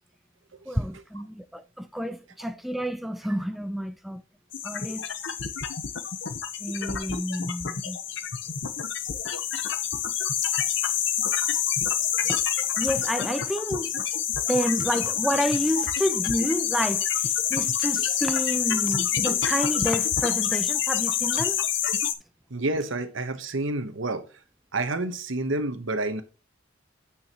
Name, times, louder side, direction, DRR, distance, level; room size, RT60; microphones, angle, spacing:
voice 1, 0.7-4.2 4.6-5.1 6.6-8.0 12.2-12.4 12.8-13.9 14.5-21.6, equal, ahead, 0.3 m, -29 dB
sound 1, 4.5-22.1, left 9 dB, 60° left, 0.8 m, -27 dB
voice 2, 22.5-24.3 24.7-26.2, right 2 dB, 70° right, 1.1 m, -29 dB
9.1 x 6.3 x 2.9 m
head